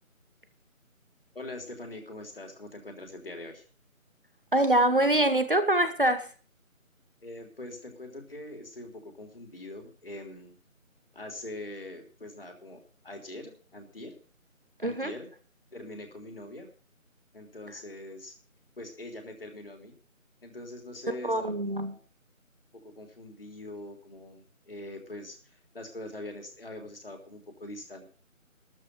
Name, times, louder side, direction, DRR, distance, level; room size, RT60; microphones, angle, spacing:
voice 1, 1.3-3.6 7.2-10.6 11.1-14.2 14.8-15.3 15.7-16.7 17.3-18.3 18.8-19.9 20.4-22.0 22.7-28.1, left 1 dB, 45° left, 4 dB, 3.2 m, -43 dB
voice 2, 4.5-6.3 14.8-15.1 21.2-21.9, right 1 dB, 40° right, 10 dB, 1.0 m, -24 dB
13.0 x 6.2 x 9.2 m, 0.40 s
figure-of-eight pair, 175°, 41 cm